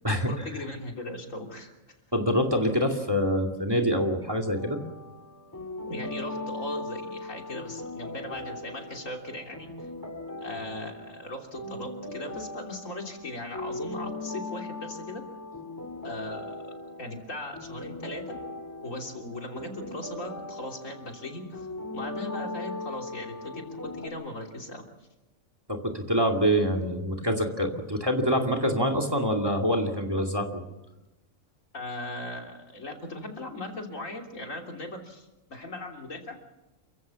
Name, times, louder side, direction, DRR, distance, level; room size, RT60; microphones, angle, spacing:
voice 1, 0.2-1.7 5.9-9.9 10.4-15.3 16.0-18.4 18.8-21.7 21.9-24.8 31.7-36.4, left 1 dB, 75° left, 2 dB, 3.5 m, -38 dB
voice 2, 2.1-4.8 25.7-30.6, equal, 20° right, 4 dB, 2.5 m, -25 dB
sound 1, 4.6-24.1, left 2 dB, 15° left, 2.5 m, -39 dB
28.5 x 15.5 x 7.1 m, 1.0 s
omnidirectional pair, 1.4 m